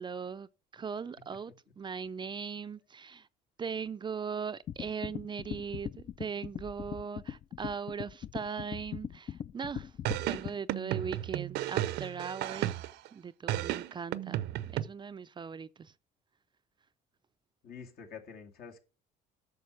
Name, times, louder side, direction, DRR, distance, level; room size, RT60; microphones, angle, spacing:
voice 1, 0.0-3.3 3.6-10.0 10.2-12.7 13.1-15.9, right 6 dB, 25° right, 0.4 m, -39 dB
sound 1, 4.7-10.6, left 9 dB, 40° left, 0.5 m, -40 dB
sound 2, 10.1-13.1 13.5-14.8, right 14 dB, 85° right, 0.6 m, -33 dB
voice 2, 17.6-18.8, left 6 dB, 65° left, 2.3 m, -47 dB
9.4 x 6.5 x 6.3 m
cardioid pair, 110°, 17 cm